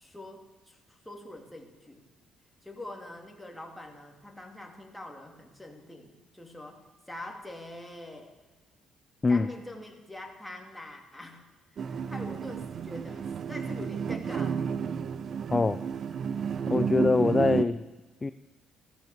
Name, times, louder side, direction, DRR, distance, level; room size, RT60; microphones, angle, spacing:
voice 1, 0.0-2.0 2.6-8.3 9.3-11.4 11.7-14.9, left 1 dB, 5° left, 2 dB, 2.7 m, -44 dB
sound 1, 11.8-17.7, right 7 dB, 45° right, 0.7 m, -31 dB
voice 2, 15.5-15.8 16.7-17.8 18.2-18.3, left 3 dB, 20° left, 13 dB, 0.5 m, -24 dB
15.0 x 14.5 x 6.7 m, 1.2 s
cardioid pair, 125°, 0 cm